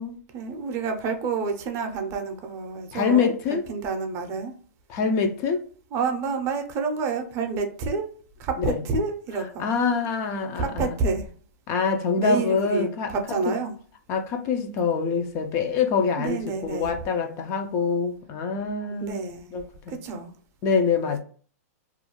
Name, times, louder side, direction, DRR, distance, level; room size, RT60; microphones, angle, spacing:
voice 1, 0.3-4.5 5.9-8.1 8.4-9.7 10.6-11.3 12.2-13.7 16.2-16.9 19.0-19.5 19.9-20.3, right 4 dB, 30° right, 0.5 m, -28 dB
voice 2, 2.9-3.6 4.9-5.6 8.6-8.8 9.6-10.9 11.7-13.1 13.5-13.6 14.1-19.2 19.5-20.0 20.6-21.2, left 5 dB, 35° left, 0.3 m, -25 dB
2.4 x 2.1 x 2.9 m
hypercardioid pair, 130°, 9 cm